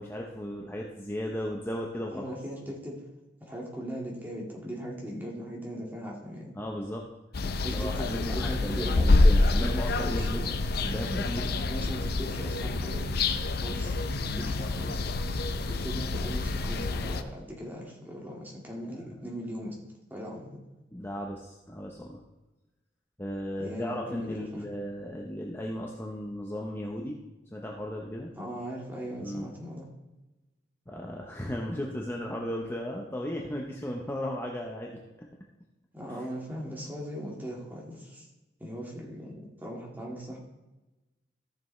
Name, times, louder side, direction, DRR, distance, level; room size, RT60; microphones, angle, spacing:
voice 1, 0.0-2.3 6.5-7.1 7.7-10.4 10.8-11.5 14.3-14.5 18.8-19.1 20.9-22.2 23.2-27.2 27.5-28.3 29.2-29.5 30.9-35.0 36.1-36.2, equal, 15° left, -1 dB, 0.8 m, -35 dB
voice 2, 2.1-3.0 3.4-6.6 7.6-10.5 11.5-13.0 13.5-14.0 14.4-15.0 15.6-19.8 20.1-20.6 23.6-24.6 28.4-29.9 35.9-38.3 38.6-40.4, equal, 10° right, -3 dB, 1.9 m, -39 dB
sound 1, 7.3-17.2, left 2 dB, 55° left, 0.6 m, -27 dB
14.0 x 6.9 x 3.2 m, 1.1 s
head